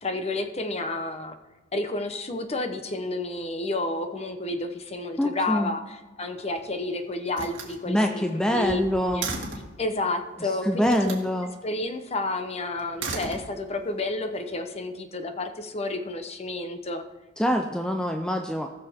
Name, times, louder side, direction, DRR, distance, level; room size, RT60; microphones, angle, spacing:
voice 1, 0.0-1.4 1.7-9.3 9.8-11.2 11.6-17.0, left 2 dB, 30° left, 7 dB, 0.9 m, -31 dB
voice 2, 5.2-5.7 7.9-9.3 10.4-11.5 17.4-18.7, equal, 5° left, 5 dB, 0.4 m, -25 dB
Slam, 6.2-6.8 7.3-9.8 10.8-11.3 12.8-13.9, right 3 dB, 65° right, 2.2 m, -36 dB
18.5 x 6.5 x 3.6 m, 1.2 s
head